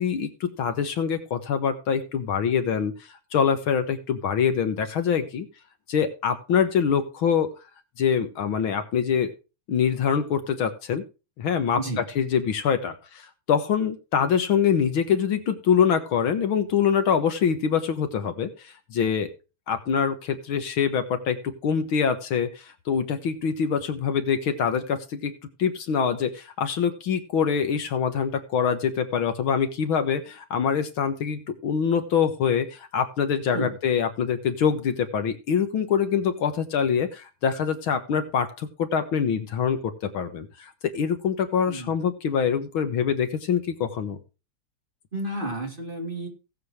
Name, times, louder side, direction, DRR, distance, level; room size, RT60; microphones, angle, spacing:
voice 1, 0.0-2.9 3.3-5.5 5.9-7.5 8.0-9.3 9.7-11.0 11.4-19.3 19.7-25.3 25.6-44.2, left 7 dB, 70° left, 9 dB, 2.1 m, -25 dB
voice 2, 41.7-42.0 45.1-46.3, right 1 dB, 25° right, 1 dB, 3.6 m, -31 dB
18.0 x 7.6 x 3.2 m, 0.30 s
omnidirectional pair, 2.3 m